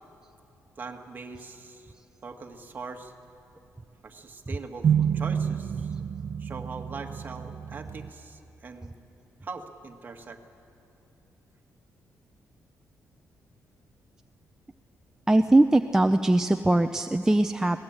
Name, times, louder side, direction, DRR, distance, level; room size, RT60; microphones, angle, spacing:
voice 1, 0.8-1.9 2.2-3.1 4.0-5.9 6.4-8.9 9.4-10.4, right 4 dB, 35° right, 4 dB, 1.8 m, -41 dB
sound 1, 4.8-8.1, right 8 dB, 50° right, 0.8 m, -28 dB
voice 2, 15.3-17.8, right 2 dB, 10° right, 7 dB, 0.5 m, -21 dB
22.0 x 19.0 x 8.9 m, 2.8 s
cardioid pair, 120°, 6 cm